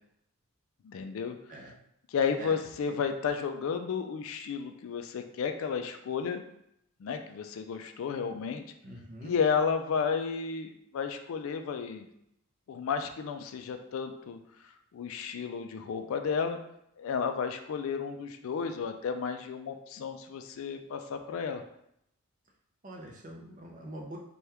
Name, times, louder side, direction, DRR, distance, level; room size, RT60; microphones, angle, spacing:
voice 1, 0.8-1.4 2.1-6.4 7.0-8.6 9.2-12.1 12.7-14.4 14.9-16.6 17.0-21.6, left 6 dB, 65° left, 8 dB, 0.3 m, -32 dB
voice 2, 8.8-9.3 22.8-24.2, right 1 dB, 35° right, 0 dB, 0.5 m, -44 dB
2.9 x 2.3 x 3.3 m, 0.76 s
head